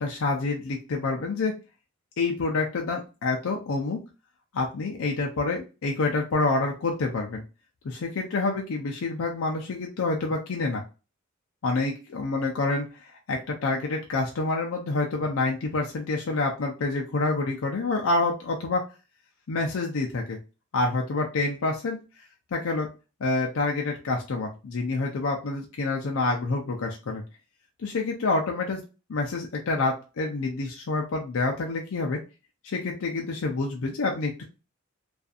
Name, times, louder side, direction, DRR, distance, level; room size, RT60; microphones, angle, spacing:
voice 1, 0.0-1.5 2.2-4.0 4.5-7.4 7.8-10.8 11.6-18.8 19.5-20.4 20.7-22.0 22.5-22.9 23.2-27.2 27.8-28.8 29.1-32.2 32.6-34.4, left 3 dB, 70° left, 0 dB, 0.5 m, -27 dB
2.6 x 2.3 x 2.4 m, 0.31 s
head